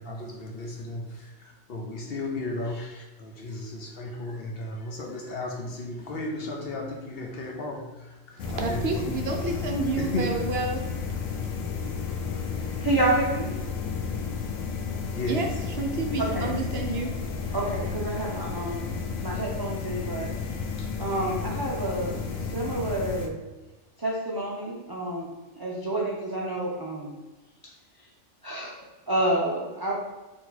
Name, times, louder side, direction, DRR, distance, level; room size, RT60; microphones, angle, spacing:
voice 1, 0.0-9.5 10.0-10.4 15.1-15.5, left 1 dB, 55° left, 0 dB, 0.8 m, -35 dB
sound 1, 8.4-23.3, left 5 dB, 85° left, 1.1 m, -32 dB
voice 2, 8.4-10.8 15.3-15.5 15.8-17.1, right 3 dB, 60° right, 2 dB, 0.8 m, -29 dB
voice 3, 12.8-13.6 16.2-16.6 17.5-20.4 20.8-23.4 24.0-25.3 25.6-27.2 27.6-27.7 28.4-29.9, right 1 dB, 30° right, -3 dB, 0.4 m, -29 dB
4.5 x 2.9 x 4.0 m, 1.2 s
omnidirectional pair, 1.3 m